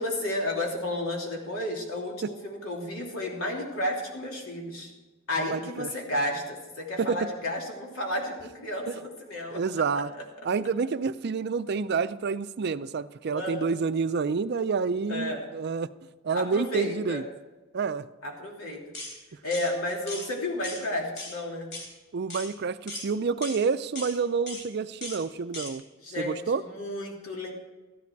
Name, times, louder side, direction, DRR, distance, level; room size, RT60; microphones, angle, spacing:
voice 1, 0.0-4.9 5.3-9.8 13.3-13.7 15.1-15.5 16.3-17.2 18.2-18.8 19.4-21.7 26.0-27.5, left 1 dB, 80° left, -1 dB, 3.0 m, -32 dB
voice 2, 5.5-5.9 7.0-7.2 8.9-9.0 9.5-10.1 10.4-15.9 16.2-17.2 17.7-18.1 22.1-25.8 26.2-26.6, right 5 dB, 50° right, 14 dB, 0.4 m, -28 dB
sound 1, 18.9-19.2 19.5-19.7 20.1-20.3 20.6-20.8 21.2-21.4 21.7-21.9 22.3-22.5 22.9-23.1 23.4-23.6 24.0-24.1 24.5-24.6 25.0-25.2 25.5-25.7, left 2 dB, 60° left, 3.6 m, -38 dB
14.0 x 11.0 x 4.6 m, 1.2 s
head